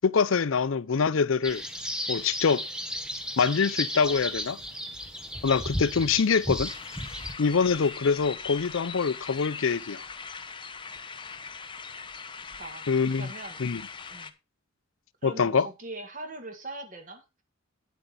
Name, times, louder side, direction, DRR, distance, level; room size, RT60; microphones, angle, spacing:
voice 1, 0.0-1.6 2.1-2.7 3.4-4.6 5.4-6.7 7.4-10.0 12.9-13.3 13.6-13.8 15.2-15.7, left 5 dB, 65° left, 0.5 m, -24 dB
sound 1, 1.4-7.3, equal, 5° right, 1.1 m, -34 dB
sound 2, 6.6-14.3, left 5 dB, 25° left, 0.7 m, -41 dB
voice 2, 13.2-13.6 14.1-14.3 15.2-17.4, right 2 dB, 40° right, 1.7 m, -41 dB
9.3 x 7.5 x 4.1 m
head